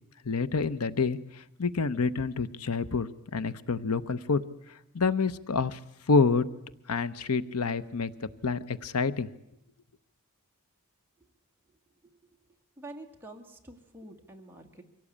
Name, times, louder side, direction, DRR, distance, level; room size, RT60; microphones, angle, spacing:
voice 1, 0.2-4.4 4.9-5.8 6.1-6.5 6.9-8.1 8.4-9.3, left 4 dB, 90° left, 14 dB, 0.9 m, -27 dB
voice 2, 12.8-14.8, right 2 dB, 10° right, 1 dB, 2.0 m, -47 dB
24.0 x 17.0 x 8.6 m, 0.85 s
head